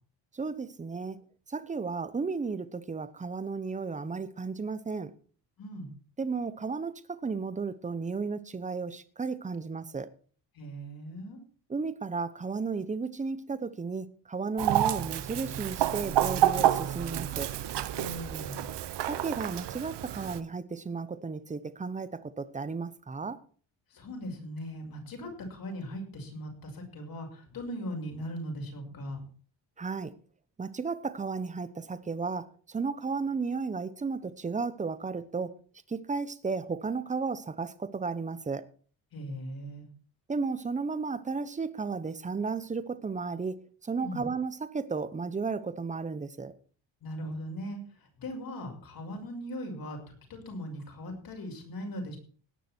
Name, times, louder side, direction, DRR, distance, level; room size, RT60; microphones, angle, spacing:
voice 1, 0.3-1.2 1.5-5.1 6.2-10.1 11.7-17.5 19.1-23.4 29.8-30.1 30.6-35.5 35.9-38.6 40.3-43.6 43.8-46.5, right 4 dB, 15° right, 0.9 m, -34 dB
voice 2, 5.6-5.9 10.5-11.4 17.9-18.7 23.9-29.2 39.1-39.9 44.0-44.3 47.0-47.8 48.2-52.2, equal, 50° left, 6.0 m, -39 dB
Chicken rooster, 14.6-20.4, right 12 dB, 65° right, 1.2 m, -29 dB
18.0 x 10.0 x 4.5 m
cardioid pair, 165°, 46 cm